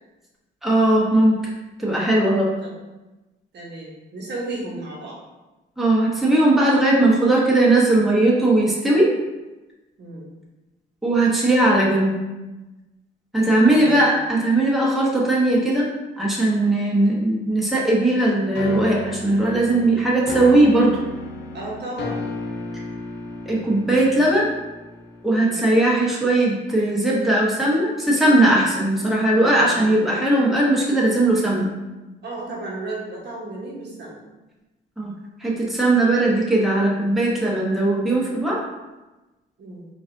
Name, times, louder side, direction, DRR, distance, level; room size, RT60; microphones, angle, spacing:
voice 1, 0.6-1.4 1.8-2.5 5.8-9.1 11.0-12.2 13.3-15.9 16.2-21.0 23.5-24.5 25.2-31.7 35.0-35.1 35.4-38.6, right 1 dB, ahead, -5 dB, 1.0 m, -18 dB
voice 2, 3.5-5.2 10.0-10.3 13.7-14.0 21.5-22.2 25.4-25.8 29.7-30.0 32.2-34.2 36.1-36.4 39.6-39.9, right 2 dB, 60° right, -4 dB, 1.1 m, -34 dB
sound 1, 18.6-25.4, left 3 dB, 60° left, 0.6 m, -33 dB
4.6 x 2.6 x 2.6 m, 1.1 s
cardioid pair, 90°, 20 cm